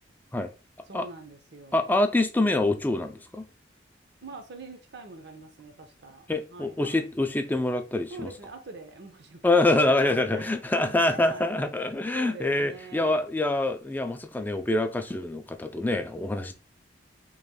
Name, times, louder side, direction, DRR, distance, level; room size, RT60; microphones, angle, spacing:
voice 1, 0.9-1.9 4.2-7.0 8.1-11.7 12.1-13.2, right 3 dB, 60° right, 0.7 m, -44 dB
voice 2, 1.7-3.5 6.3-8.3 9.4-16.5, left 2 dB, 10° left, 0.3 m, -25 dB
5.0 x 3.1 x 2.2 m
head